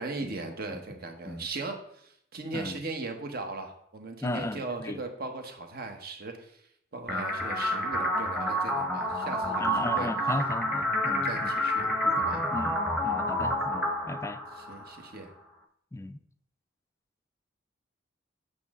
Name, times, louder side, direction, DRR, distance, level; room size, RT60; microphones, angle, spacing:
voice 1, 0.0-6.6 6.9-10.1 11.0-12.4 14.6-15.3, right 3 dB, 55° right, 1.2 m, -38 dB
voice 2, 0.7-1.0 1.3-1.5 2.5-2.8 4.2-5.0 9.6-11.5 12.0-14.4 15.9-16.2, left 2 dB, 15° left, 0.4 m, -36 dB
sound 1, 7.1-15.1, equal, 5° right, 1.0 m, -29 dB
8.4 x 6.4 x 3.7 m
head